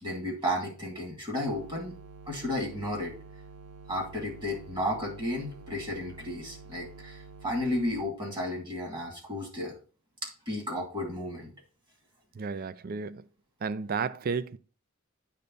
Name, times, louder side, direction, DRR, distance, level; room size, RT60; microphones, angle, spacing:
voice 1, 0.0-1.9 2.3-3.1 3.9-9.8 10.5-11.5, left 1 dB, 20° right, 2.4 m, -33 dB
sound 1, 1.5-8.0, right 3 dB, 90° right, 0.8 m, -48 dB
voice 2, 12.3-13.3 13.6-14.6, right 5 dB, 45° right, 0.4 m, -32 dB
9.6 x 3.5 x 4.0 m
head